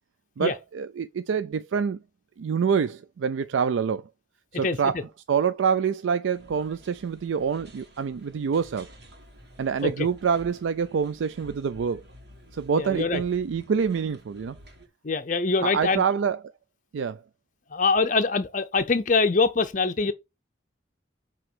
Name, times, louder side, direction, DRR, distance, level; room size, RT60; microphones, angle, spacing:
voice 1, 0.4-2.0 2.4-4.0 4.5-5.0 5.3-8.9 9.6-12.0 12.5-14.6 15.6-16.4 16.9-17.2, right 6 dB, 85° right, 0.4 m, -26 dB
voice 2, 4.6-5.0 9.8-10.1 12.7-13.2 15.0-16.0 17.7-20.1, left 4 dB, 40° left, 0.6 m, -24 dB
sound 1, 6.3-14.9, equal, 60° right, 1.6 m, -51 dB
7.6 x 3.0 x 6.1 m
head